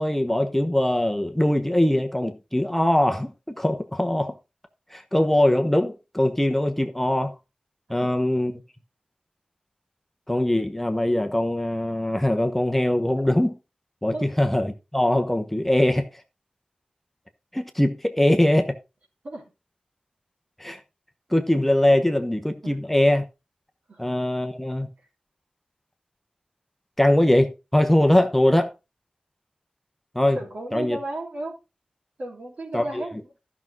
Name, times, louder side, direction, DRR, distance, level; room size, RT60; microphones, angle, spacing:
voice 1, 0.0-4.3 4.9-7.3 7.9-8.5 10.3-13.5 14.0-16.1 17.5-18.7 20.6-20.8 21.3-23.2 24.0-24.9 27.0-28.7 30.1-30.4 30.7-31.0 32.7-32.8, left 1 dB, 5° left, 1.0 m, -22 dB
voice 2, 30.3-31.6 32.2-33.3, right 1 dB, 65° right, 3.3 m, -34 dB
13.0 x 6.1 x 3.9 m
wide cardioid pair, 95°, 3 cm